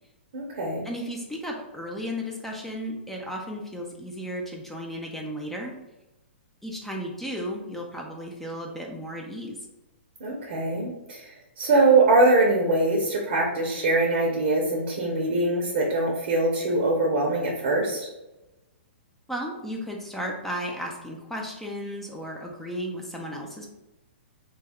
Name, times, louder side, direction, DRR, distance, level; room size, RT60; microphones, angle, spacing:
voice 1, 0.3-0.9 10.2-18.1, right 2 dB, 55° right, -1 dB, 0.6 m, -23 dB
voice 2, 0.8-5.7 6.6-9.6 19.3-23.7, equal, 5° left, 0 dB, 0.3 m, -34 dB
2.2 x 2.2 x 3.4 m, 1.0 s
hypercardioid pair, 125°, 7 cm